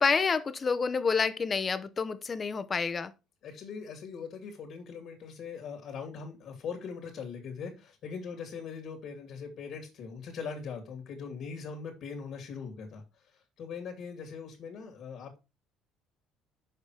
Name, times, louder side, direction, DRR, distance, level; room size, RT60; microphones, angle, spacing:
voice 1, 0.0-3.1, left 5 dB, 30° left, 0.8 m, -28 dB
voice 2, 3.4-15.4, left 6 dB, 65° left, 2.5 m, -41 dB
6.8 x 5.4 x 4.8 m
supercardioid pair, 90°, 0 cm